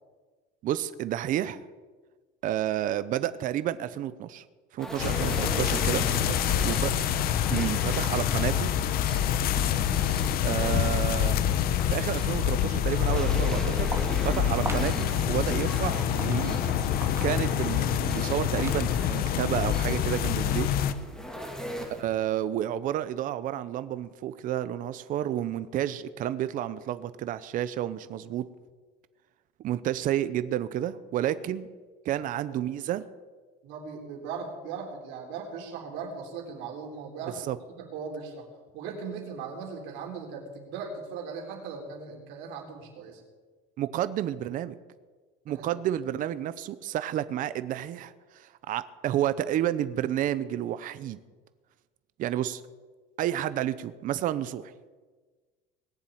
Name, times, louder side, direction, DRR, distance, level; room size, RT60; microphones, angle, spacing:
voice 1, 0.6-1.6 2.4-4.4 4.7-6.0 6.6-6.9 7.5-8.7 10.4-11.4 11.9-16.6 17.2-20.7 21.9-28.5 29.6-31.7 32.0-33.0 37.5-37.6 43.8-44.8 45.5-51.2 52.2-52.6 53.2-54.7, right 12 dB, 45° right, 14 dB, 0.7 m, -30 dB
sound 1, 4.8-22.0, equal, 5° left, 2.4 m, -39 dB
voice 2, 4.8-5.1 6.0-6.9 21.3-21.5 32.2-32.6 33.6-37.5 37.8-38.5 38.7-43.2 45.5-45.7, right 5 dB, 75° right, 1 dB, 3.8 m, -39 dB
sound 2, 5.0-20.9, left 10 dB, 50° left, 1.0 m, -26 dB
Walk footsteps, 12.7-19.1, right 3 dB, 15° right, 2.0 m, -42 dB
19.5 x 7.4 x 9.2 m, 1.4 s
cardioid pair, 155°, 19 cm